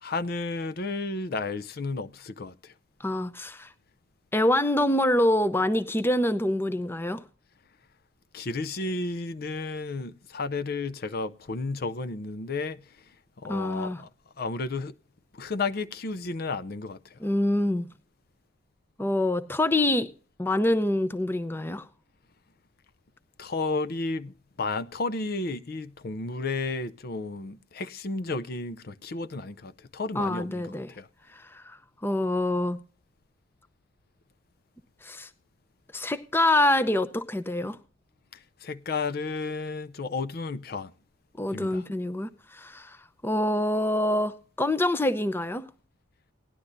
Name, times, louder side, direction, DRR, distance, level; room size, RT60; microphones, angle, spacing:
voice 1, 0.0-2.7 8.3-12.9 13.4-14.1 14.4-14.9 15.3-17.2 23.4-31.1 38.3-40.9 41.5-41.8, left 3 dB, 50° left, 0.6 m, -32 dB
voice 2, 3.0-3.7 4.3-7.2 13.5-14.0 17.2-17.9 19.0-20.1 20.4-21.9 30.1-30.9 31.3-32.8 35.0-35.3 35.9-37.8 41.4-43.0 43.2-45.6, left 1 dB, 10° left, 0.6 m, -26 dB
18.0 x 11.5 x 2.6 m
head